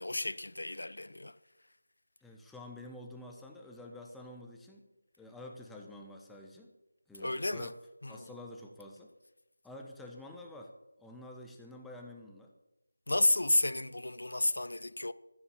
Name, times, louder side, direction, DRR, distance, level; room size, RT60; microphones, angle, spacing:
voice 1, 0.0-1.4 7.2-7.7 8.0-8.3 13.1-15.1, left 2 dB, 75° left, 0.8 m, -31 dB
voice 2, 2.2-4.9 5.2-6.7 7.1-7.7 8.1-9.1 9.6-12.5, left 1 dB, 5° left, 1.0 m, -49 dB
14.0 x 8.5 x 7.2 m
figure-of-eight pair, 165°, 0 cm